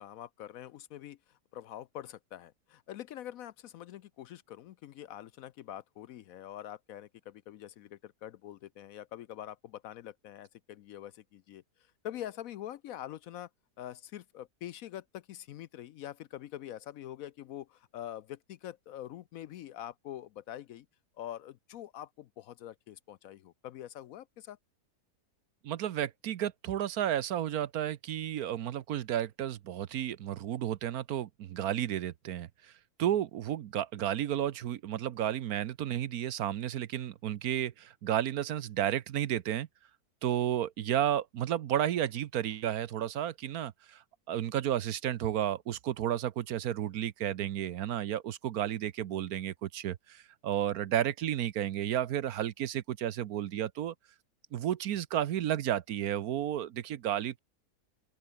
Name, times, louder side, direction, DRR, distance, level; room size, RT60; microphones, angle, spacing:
voice 1, 0.0-13.5 13.8-20.9 21.2-24.6, left 12 dB, 70° left, 0.9 m, -45 dB
voice 2, 25.6-32.7 33.0-39.7 40.2-53.9 54.5-57.4, right 11 dB, 70° right, 1.2 m, -32 dB
open air
omnidirectional pair, 1.7 m